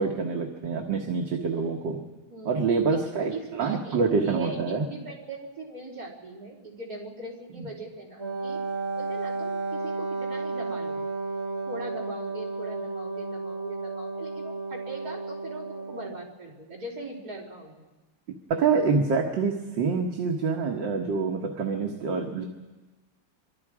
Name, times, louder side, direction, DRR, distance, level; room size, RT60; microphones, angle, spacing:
voice 1, 0.0-2.0 2.5-4.8 7.6-7.7 18.5-22.5, right 5 dB, 65° right, 1 dB, 2.1 m, -26 dB
voice 2, 2.3-8.6 9.0-11.0 11.7-17.9, right 2 dB, 45° right, -3 dB, 4.4 m, -41 dB
Wind instrument woodwind instrument, 8.2-16.3, right 3 dB, 30° right, 2.0 m, -33 dB
25.5 x 24.5 x 5.0 m, 1.2 s
omnidirectional pair, 2.2 m